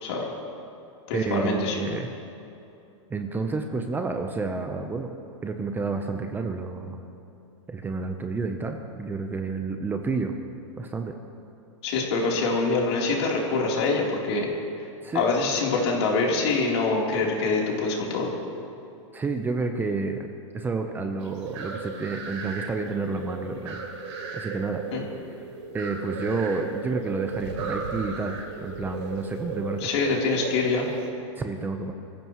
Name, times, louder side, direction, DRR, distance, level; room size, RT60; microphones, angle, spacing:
voice 1, 0.0-0.4 1.1-1.8 11.8-14.5 15.1-18.3 24.9-25.0 29.8-30.8, left 3 dB, 60° left, -2 dB, 3.7 m, -25 dB
voice 2, 1.1-2.1 3.1-5.1 5.4-7.0 7.7-10.3 10.8-11.1 15.0-15.2 19.1-23.8 24.3-24.8 25.7-29.9 31.4-31.9, right 4 dB, 10° right, 5 dB, 0.8 m, -30 dB
sound 1, 21.2-31.1, right 4 dB, 70° right, 3.6 m, -35 dB
25.0 x 15.0 x 3.1 m, 2.7 s
hypercardioid pair, 135°, 16 cm